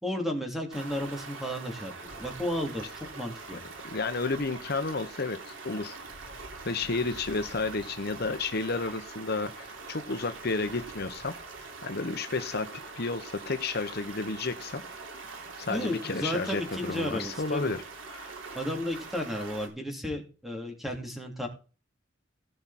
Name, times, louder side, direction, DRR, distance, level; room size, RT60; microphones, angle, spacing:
voice 1, 0.0-2.8 3.1-3.6 15.7-17.7 18.5-21.5, left 1 dB, ahead, 2 dB, 2.9 m, -33 dB
Stream, 0.7-19.7, right 3 dB, 85° right, 3.2 m, -43 dB
voice 2, 3.9-6.0 6.6-11.3 11.8-12.7 13.0-14.8 15.6-17.8 18.1-18.3, left 3 dB, 55° left, 8 dB, 1.0 m, -31 dB
17.0 x 6.2 x 4.2 m, 0.35 s
head